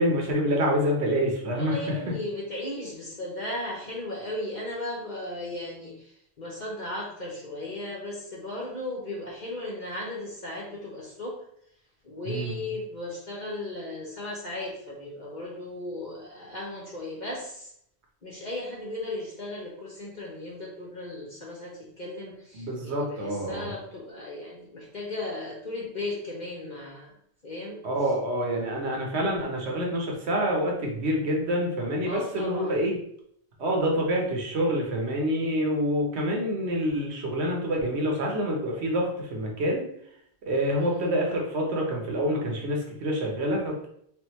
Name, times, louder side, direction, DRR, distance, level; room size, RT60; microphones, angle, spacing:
voice 1, 0.0-1.8 12.2-12.5 22.5-23.7 27.8-33.0 33.6-39.8 40.5-43.9, equal, 75° right, 0 dB, 1.3 m, -27 dB
voice 2, 1.5-11.4 12.0-17.7 18.2-27.2 27.4-27.8 32.0-32.8 40.7-41.2, left 2 dB, 45° left, -3 dB, 1.0 m, -36 dB
3.7 x 3.5 x 3.0 m, 0.70 s
omnidirectional pair, 1.1 m